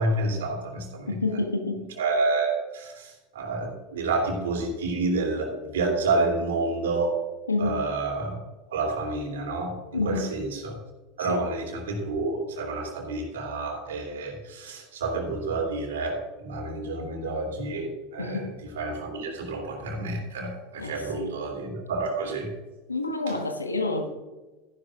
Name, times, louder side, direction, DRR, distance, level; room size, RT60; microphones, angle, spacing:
voice 1, 0.0-1.2 2.0-7.2 7.6-8.4 8.7-9.7 10.0-10.8 11.2-18.5 18.8-22.5 23.3-23.4, right 3 dB, 70° right, 1 dB, 3.1 m, -29 dB
voice 2, 1.1-1.8 7.5-7.8 9.9-10.3 11.3-11.4 18.2-18.5 20.8-21.3 22.9-24.1, left 3 dB, 90° left, 6 dB, 1.3 m, -28 dB
14.0 x 11.0 x 2.5 m, 1.2 s
figure-of-eight pair, 80°, 0 cm